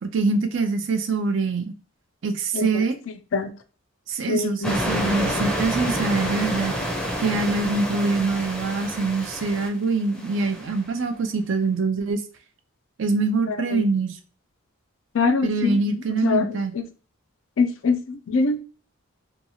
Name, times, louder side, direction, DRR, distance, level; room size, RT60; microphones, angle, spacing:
voice 1, 0.0-1.7 2.2-3.0 4.1-6.7 7.2-12.2 13.0-14.1 15.4-16.7, right 3 dB, 60° right, 8 dB, 0.5 m, -24 dB
voice 2, 2.5-2.8 3.3-3.5 4.3-4.7 13.5-13.9 15.1-16.8 17.6-18.6, left 4 dB, 65° left, 9 dB, 0.4 m, -24 dB
sound 1, 4.6-10.8, equal, 5° left, 0.5 m, -28 dB
2.9 x 2.3 x 2.7 m, 0.37 s
head